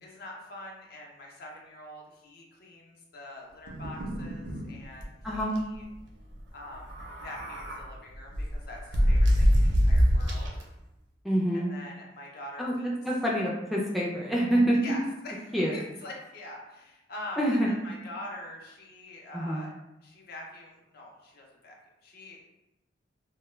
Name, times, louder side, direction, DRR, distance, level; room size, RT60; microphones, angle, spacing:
voice 1, 0.0-2.8 3.1-5.0 5.7-5.8 6.5-6.8 7.2-8.3 8.7-8.8 9.1-9.2 9.6-10.5 11.7-12.9 14.8-15.3 15.7-16.6 17.1-19.7 20.3-20.7 20.9-21.1 21.4-21.7 22.1-22.4, left 1 dB, 60° left, -1 dB, 0.5 m, -43 dB
sound 1, 3.7-4.7 5.0-5.1 5.4-5.6 6.8-7.8 8.3-10.6, equal, 75° right, 0.5 m, -24 dB
voice 2, 5.2-5.5 11.2-11.7 12.6-14.8 15.5-15.8 17.4-17.8 19.3-19.7, equal, ahead, -4 dB, 0.3 m, -26 dB
2.2 x 2.1 x 3.1 m, 0.92 s
head